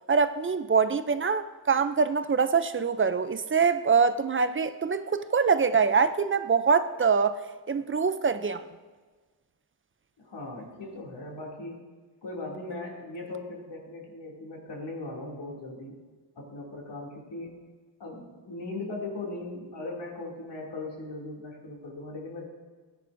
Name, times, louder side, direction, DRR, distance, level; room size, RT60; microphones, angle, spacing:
voice 1, 0.1-7.4 7.7-8.6, right 5 dB, 30° right, 0.4 m, -24 dB
voice 2, 10.2-11.8 12.2-15.9 16.4-17.6 18.0-22.5, left 2 dB, 85° left, 2.6 m, -39 dB
18.0 x 10.0 x 2.6 m
wide cardioid pair, 160°, 40 cm